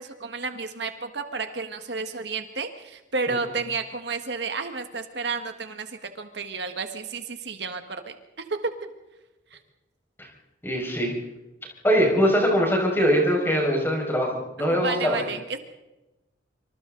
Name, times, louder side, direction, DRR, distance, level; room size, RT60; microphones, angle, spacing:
voice 1, 0.0-8.1 8.5-8.7 9.5-9.6 14.6-15.6, right 4 dB, 60° right, 6 dB, 1.6 m, -31 dB
voice 2, 10.6-11.1 11.8-15.2, equal, 10° left, -1 dB, 5.7 m, -22 dB
26.0 x 25.5 x 4.0 m, 1.0 s
head